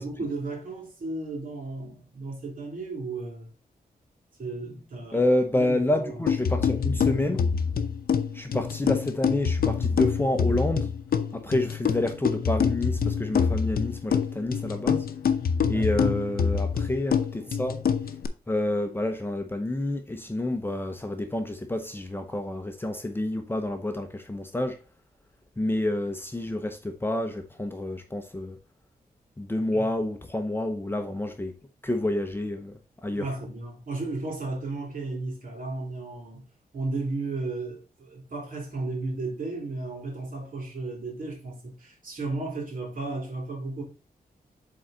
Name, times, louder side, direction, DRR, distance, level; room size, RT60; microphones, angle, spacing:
voice 1, 0.0-3.5 4.4-5.3 5.5-6.3 15.7-16.1 29.7-29.9 33.1-36.5 36.7-43.8, right 3 dB, 60° right, 2.9 m, -34 dB
voice 2, 5.1-7.4 8.3-10.9 11.3-15.1 15.7-17.8 18.5-24.8 25.6-28.6 29.4-31.5 31.8-33.3, left 1 dB, 15° left, 0.8 m, -28 dB
sound 1, 6.3-18.3, left 6 dB, 70° left, 0.7 m, -26 dB
7.7 x 3.9 x 3.9 m
wide cardioid pair, 135°, 16 cm